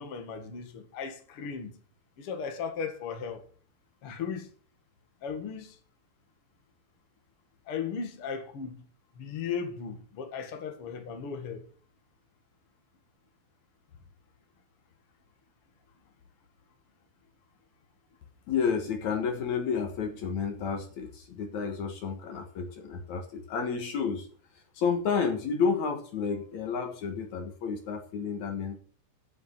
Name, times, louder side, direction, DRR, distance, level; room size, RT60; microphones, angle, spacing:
voice 1, 0.0-1.7 2.2-3.4 4.0-4.5 5.2-5.7 7.7-8.8 9.1-11.6, left 6 dB, 85° left, 1.2 m, -36 dB
voice 2, 18.5-24.3 24.7-28.8, left 6 dB, 65° left, 1.8 m, -31 dB
10.0 x 7.0 x 7.6 m
omnidirectional pair, 5.5 m